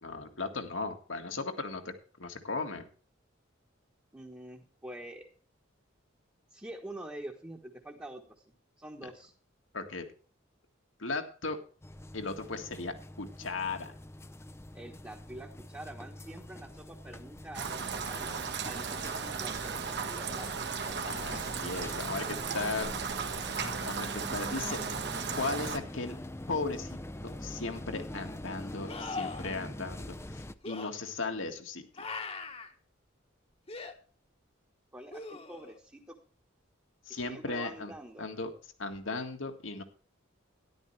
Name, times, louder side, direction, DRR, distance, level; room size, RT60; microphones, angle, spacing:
voice 1, 0.0-1.9 2.2-2.9 9.7-10.0 11.0-11.6 12.1-13.9 21.0-22.9 23.6-24.8 25.3-26.2 26.5-27.0 27.2-31.8 37.1-37.9 38.2-38.5 38.8-39.8, left 3 dB, 70° left, 5 dB, 1.9 m, -36 dB
voice 2, 4.1-5.3 6.5-8.4 8.8-9.3 14.7-18.4 18.7-20.5 20.9-21.0 34.9-36.2 37.1-38.2, right 1 dB, 10° right, 0 dB, 1.3 m, -46 dB
sound 1, 11.8-30.5, left 1 dB, 15° left, 0.5 m, -45 dB
Rain, 17.5-25.8, right 5 dB, 60° right, 1.4 m, -36 dB
sound 2, 27.3-27.4 28.9-29.5 30.6-30.9 32.0-32.7 33.7-33.9 35.1-35.8 38.9-39.0, left 3 dB, 30° left, 1.3 m, -40 dB
13.0 x 11.0 x 3.3 m, 0.41 s
head